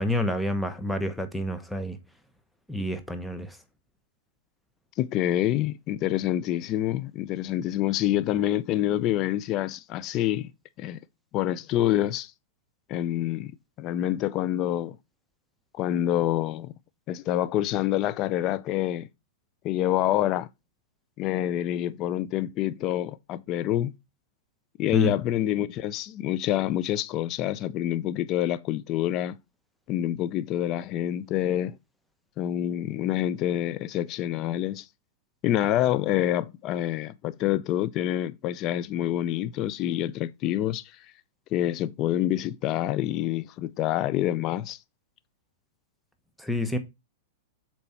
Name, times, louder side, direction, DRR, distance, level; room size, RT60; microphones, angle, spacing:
voice 1, 0.0-2.0 2.7-3.6 24.9-25.1 46.4-46.8, left 1 dB, ahead, 0.9 m, -28 dB
voice 2, 5.0-10.5 10.8-11.0 11.3-12.3 12.9-15.0 15.8-16.7 17.1-19.1 19.6-20.5 21.2-23.9 24.8-29.4 29.9-31.7 32.4-34.9 35.4-40.8 41.5-44.8, left 12 dB, 40° left, 0.5 m, -27 dB
6.8 x 4.5 x 4.3 m
hypercardioid pair, 125°, 0 cm